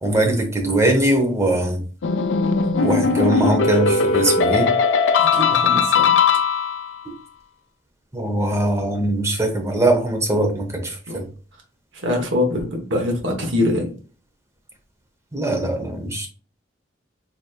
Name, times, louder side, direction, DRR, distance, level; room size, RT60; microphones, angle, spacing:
voice 1, 0.0-1.8 2.8-4.7 8.1-11.2 15.3-16.3, right 1 dB, 15° right, 3 dB, 0.8 m, -21 dB
sound 1, 2.0-7.0, left 5 dB, 70° left, 0.5 m, -19 dB
voice 2, 5.2-6.2 11.1-11.2 11.9-13.9, left 1 dB, 80° right, 1 dB, 1.0 m, -23 dB
4.0 x 3.2 x 2.3 m, 0.39 s
head